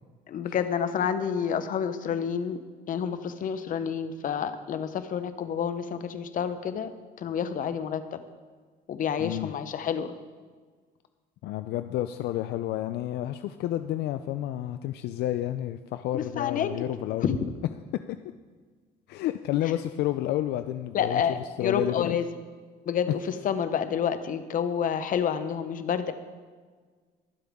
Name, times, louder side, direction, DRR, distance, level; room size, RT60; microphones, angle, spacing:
voice 1, 0.3-2.6 2.9-6.9 7.2-8.2 8.9-10.1 16.1-16.9 17.2-17.4 20.9-22.3 22.8-26.1, left 7 dB, 55° left, 10 dB, 0.9 m, -29 dB
voice 2, 9.2-9.5 11.4-17.3 19.1-21.2 21.6-22.2, left 13 dB, 75° left, 10 dB, 0.5 m, -30 dB
21.5 x 7.7 x 3.6 m, 1.5 s
cardioid pair, 110°, 17 cm